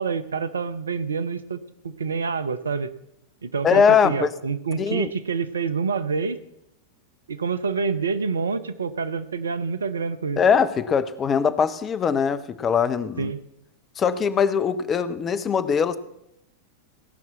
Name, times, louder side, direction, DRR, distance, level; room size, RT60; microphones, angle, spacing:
voice 1, 0.0-2.9 3.4-6.4 7.3-10.4 13.2-13.4, right 5 dB, 70° right, 12 dB, 0.8 m, -27 dB
voice 2, 3.6-4.3 4.8-5.1 10.4-13.3 14.0-16.0, left 6 dB, 25° left, 12 dB, 0.8 m, -21 dB
17.0 x 6.0 x 7.3 m, 0.83 s
figure-of-eight pair, 90°, 0 cm